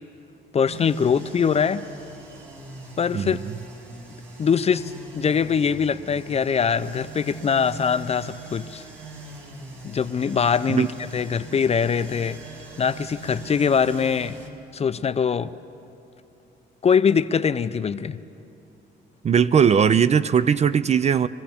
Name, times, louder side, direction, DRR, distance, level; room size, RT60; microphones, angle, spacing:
voice 1, 0.5-1.8 3.0-3.4 4.4-8.8 9.8-10.9 11.1-12.4 12.8-14.4 14.7-15.5 16.8-18.2, left 6 dB, 30° left, 14 dB, 0.4 m, -22 dB
sound 1, 0.7-14.5, right 2 dB, 75° right, 2.0 m, -41 dB
voice 2, 3.1-3.5 10.7-10.9 19.2-21.3, right 7 dB, 35° right, 15 dB, 0.3 m, -19 dB
24.0 x 14.5 x 3.5 m, 2.7 s
cardioid pair, 90°, 20 cm